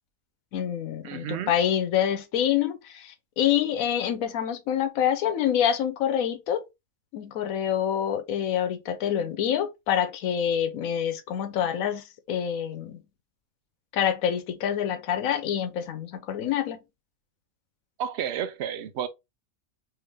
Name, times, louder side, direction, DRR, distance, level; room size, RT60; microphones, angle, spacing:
voice 1, 0.5-6.7 7.1-13.0 13.9-16.8, left 9 dB, 90° left, 1.1 m, -26 dB
voice 2, 1.0-1.6 18.0-19.1, right 9 dB, 65° right, 0.8 m, -31 dB
3.4 x 2.8 x 3.2 m
omnidirectional pair, 1.4 m